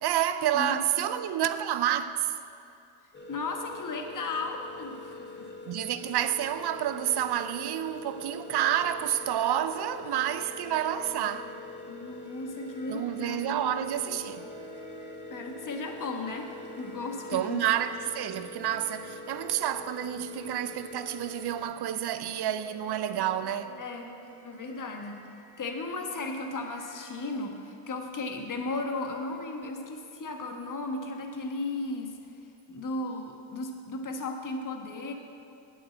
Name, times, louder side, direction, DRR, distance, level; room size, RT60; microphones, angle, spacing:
voice 1, 0.0-2.3 5.7-11.5 12.9-14.5 17.3-23.8, right 11 dB, 50° right, 0.6 m, -29 dB
sound 1, 3.1-21.6, left 3 dB, 20° left, 1.4 m, -44 dB
voice 2, 3.3-5.5 10.2-10.3 11.9-14.2 15.3-17.6 23.8-24.1 24.4-25.2 25.6-32.2 32.7-35.1, left 2 dB, 40° left, 1.3 m, -35 dB
sound 2, 8.8-27.2, right 3 dB, 70° right, 2.5 m, -54 dB
8.6 x 6.2 x 7.5 m
cardioid pair, 80°, 50 cm